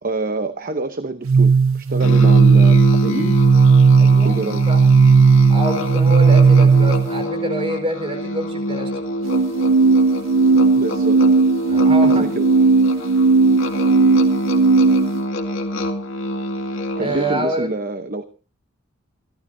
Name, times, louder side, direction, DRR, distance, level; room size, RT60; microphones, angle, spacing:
voice 1, 0.0-3.4 4.2-4.7 10.4-11.2 12.0-12.5 17.0-18.2, right 2 dB, 45° right, 9 dB, 0.9 m, -27 dB
sound 1, 1.2-7.2 9.2-15.2, right 4 dB, 80° right, 0.6 m, -14 dB
Musical instrument, 2.0-17.6, left 1 dB, 70° left, 2.2 m, -26 dB
voice 2, 4.0-4.8 5.5-9.0 11.7-12.3 17.0-17.7, right 1 dB, 25° right, 5 dB, 4.6 m, -26 dB
27.5 x 12.5 x 2.7 m, 0.35 s
head